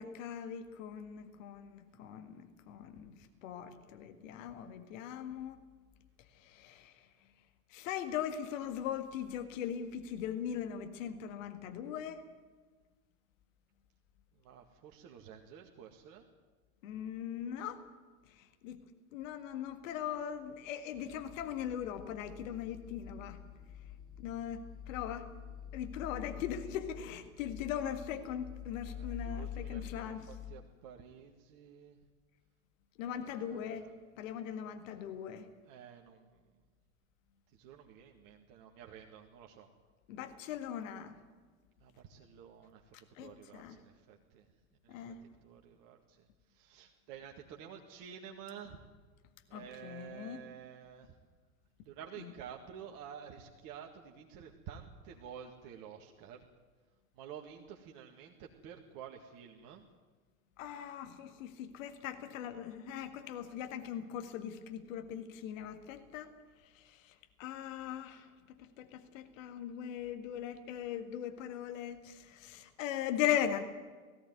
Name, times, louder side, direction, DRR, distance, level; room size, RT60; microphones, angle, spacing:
voice 1, 0.0-5.6 6.3-7.1 7.7-12.2 16.8-17.8 18.3-18.8 19.1-23.4 24.2-25.3 25.7-30.3 33.0-33.9 34.2-35.5 40.1-41.2 42.9-43.8 44.9-45.2 49.5-50.4 52.2-52.3 60.6-66.3 66.6-73.6, left 9 dB, 60° left, 8 dB, 1.9 m, -40 dB
voice 2, 14.3-16.2 29.0-32.0 33.0-34.0 34.5-35.1 35.6-36.5 37.5-39.7 41.8-44.5 44.8-45.1 45.4-48.8 49.5-51.2 51.9-56.5 57.1-59.9, right 8 dB, 50° right, 2 dB, 2.0 m, -51 dB
sound 1, 20.9-30.5, left 9 dB, 10° right, 2.7 m, -47 dB
18.5 x 16.0 x 9.5 m, 1.4 s
figure-of-eight pair, 85°, 43 cm